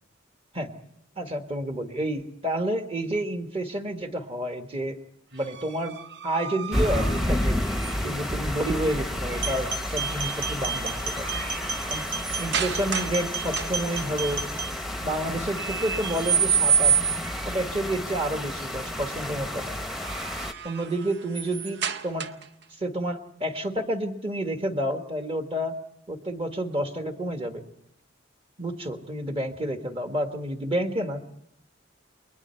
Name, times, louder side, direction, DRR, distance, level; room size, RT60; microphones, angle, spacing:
voice 1, 1.2-5.0 5.3-7.6 8.0-11.3 11.9-12.1 12.4-14.5 15.0-17.0 17.4-19.8 20.6-22.3 22.8-25.8 26.1-27.6 28.6-31.2, right 1 dB, 30° right, 6 dB, 1.6 m, -29 dB
sound 1, 5.4-8.3 10.0-10.4 10.8-13.2 13.5-14.0 15.6-17.5 19.8-22.6, right 7 dB, 60° right, 0.7 m, -29 dB
sound 2, 6.7-20.5, left 1 dB, ahead, 0.9 m, -31 dB
sound 3, 9.4-14.7, right 5 dB, 75° right, 2.9 m, -33 dB
29.0 x 21.5 x 4.5 m, 0.72 s
head